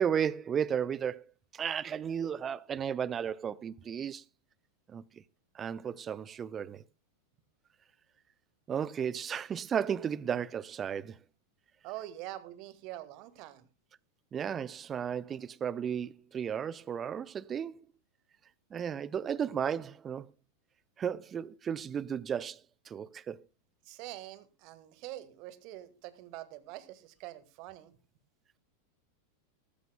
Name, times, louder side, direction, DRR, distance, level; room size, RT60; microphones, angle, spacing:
voice 1, 0.0-4.2 4.9-5.2 5.5-6.8 8.7-11.2 14.3-17.8 18.7-20.3 21.0-22.6 22.9-23.4, right 8 dB, 25° right, 0.6 m, -34 dB
voice 2, 11.8-13.7 23.8-28.0, right 15 dB, 40° right, 1.6 m, -45 dB
18.5 x 15.0 x 2.2 m
figure-of-eight pair, 90°, 0 cm